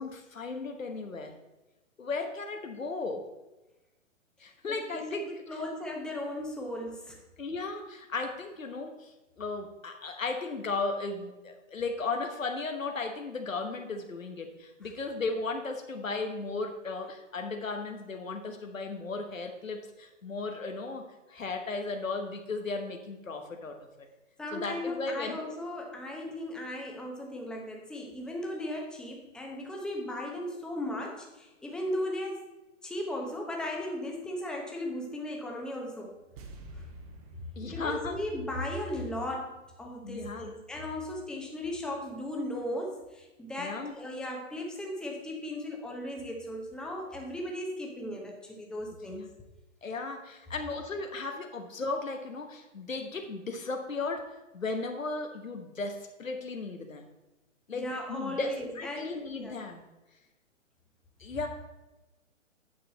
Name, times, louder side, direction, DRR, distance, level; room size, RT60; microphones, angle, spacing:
voice 1, 0.0-1.3 2.0-3.2 4.4-5.3 7.4-24.1 24.5-25.4 37.6-38.2 40.0-40.5 43.6-43.9 49.1-49.3 49.8-54.3 54.5-57.1 57.7-57.8 58.1-59.8 61.2-61.5, left 3 dB, 90° left, 4 dB, 1.2 m, -35 dB
voice 2, 4.7-7.2 24.4-32.5 32.8-36.2 36.7-36.8 37.7-49.3 57.7-59.6, left 1 dB, ahead, 0 dB, 0.7 m, -37 dB
sound 1, 36.4-39.6 39.8-39.9, right 3 dB, 30° right, 0.9 m, -50 dB
8.5 x 5.8 x 4.1 m, 1.1 s
hypercardioid pair, 130°, 39 cm